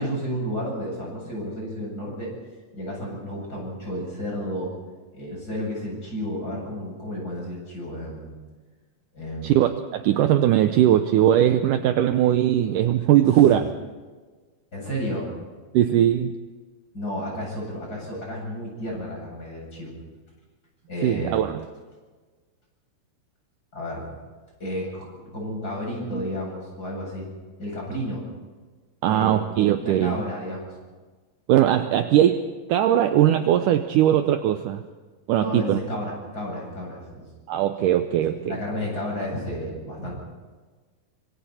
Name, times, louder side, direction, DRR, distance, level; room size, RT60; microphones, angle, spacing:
voice 1, 0.0-2.3 2.7-4.7 5.1-8.3 9.1-9.6 13.3-13.5 14.7-15.3 16.9-19.9 20.9-21.5 23.7-24.0 24.6-27.3 27.6-28.2 29.1-29.4 29.8-30.7 35.3-37.3 38.3-40.1, equal, 20° left, -2 dB, 8.4 m, -32 dB
voice 2, 9.4-13.7 15.7-16.3 21.0-21.6 29.0-30.2 31.5-34.8 35.3-35.8 37.5-38.6, right 11 dB, 80° right, 8 dB, 1.9 m, -20 dB
25.5 x 25.0 x 4.3 m, 1.4 s
omnidirectional pair, 4.5 m